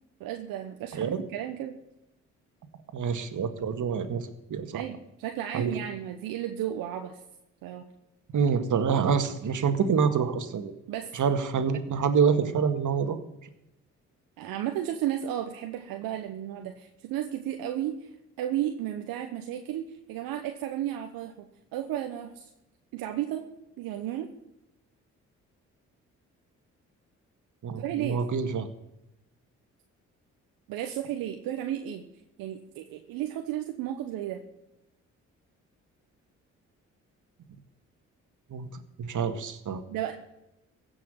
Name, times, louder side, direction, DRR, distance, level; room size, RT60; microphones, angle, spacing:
voice 1, 0.2-1.8 4.7-7.2 7.6-7.8 10.9-11.1 14.4-18.1 18.4-22.5 22.9-23.4 23.8-24.3 27.8-28.2 30.7-32.0 32.4-34.4 39.9-40.1, right 11 dB, 80° right, 5 dB, 1.1 m, -33 dB
voice 2, 2.9-4.8 5.5-5.7 8.3-10.7 11.1-13.2 27.6-28.7 38.5-38.7 39.0-39.8, right 6 dB, 60° right, 9 dB, 1.9 m, -26 dB
16.0 x 6.2 x 9.0 m, 0.89 s
hypercardioid pair, 45°, 34 cm